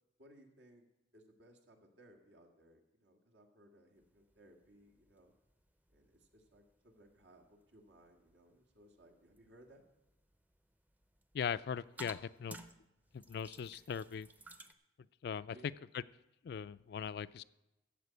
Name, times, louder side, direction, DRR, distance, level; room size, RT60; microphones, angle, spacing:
voice 1, 0.2-0.9 1.1-5.3 5.9-9.8 15.5-15.7, right 1 dB, 80° right, 2 dB, 1.8 m, -63 dB
sound 1, 4.0-14.7, right 1 dB, 10° right, 0.5 m, -58 dB
voice 2, 11.3-12.6 13.1-14.3 15.2-15.6 15.9-16.0 16.4-17.4, left 7 dB, 60° left, 17 dB, 0.3 m, -40 dB
14.5 x 5.1 x 8.2 m, 0.98 s
head